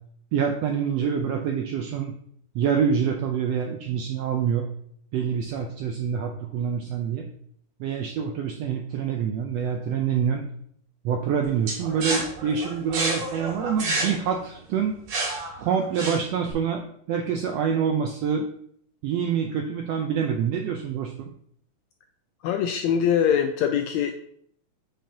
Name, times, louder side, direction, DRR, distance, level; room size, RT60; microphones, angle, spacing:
voice 1, 0.3-2.1 2.5-4.7 5.1-7.3 7.8-10.5 11.0-14.9 15.6-18.5 19.0-21.3, right 7 dB, 80° right, 3 dB, 1.5 m, -26 dB
sound 1, 11.7-16.5, right 2 dB, 60° right, 2.8 m, -30 dB
voice 2, 22.4-24.1, left 8 dB, 80° left, 6 dB, 1.6 m, -23 dB
8.7 x 5.4 x 2.8 m, 0.64 s
omnidirectional pair, 3.6 m